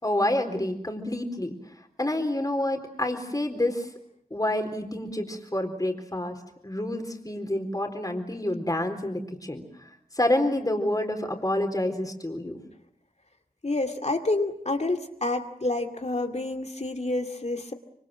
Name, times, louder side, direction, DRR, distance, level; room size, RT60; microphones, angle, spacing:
voice 1, 0.0-1.5 2.0-3.9 4.3-6.3 6.6-9.6 10.2-12.6, left 1 dB, 25° left, 4 dB, 4.0 m, -28 dB
voice 2, 13.6-17.7, left 2 dB, 50° left, 5 dB, 2.4 m, -28 dB
26.0 x 25.0 x 7.7 m, 0.73 s
wide cardioid pair, 60°, 15 cm